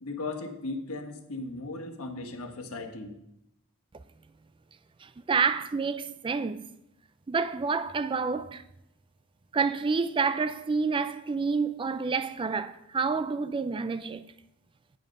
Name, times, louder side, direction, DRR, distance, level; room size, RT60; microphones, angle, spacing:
voice 1, 0.0-3.2, left 3 dB, 90° left, 1.2 m, -37 dB
voice 2, 5.0-6.7 7.3-8.6 9.5-14.3, right 5 dB, 25° right, 0.4 m, -28 dB
9.0 x 7.5 x 5.2 m
head